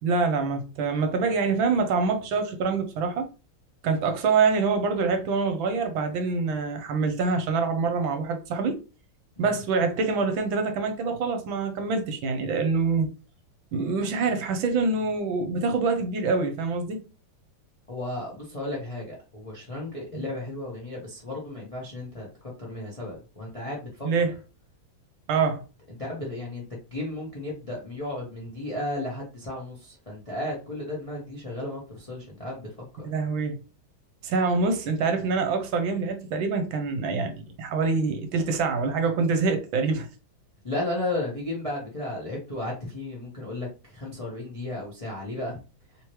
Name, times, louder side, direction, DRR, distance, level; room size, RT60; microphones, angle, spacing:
voice 1, 0.0-3.2 3.8-8.8 9.4-13.1 13.7-17.0 20.1-20.2 24.0-24.3 25.3-25.6 33.0-33.6 34.2-37.3 37.6-40.1, right 4 dB, 75° right, 1.4 m, -25 dB
voice 2, 17.9-24.1 26.0-26.6 26.9-32.7 32.9-33.1 40.6-45.6, left 1 dB, 55° left, 0.4 m, -34 dB
3.5 x 3.0 x 3.0 m
omnidirectional pair, 2.3 m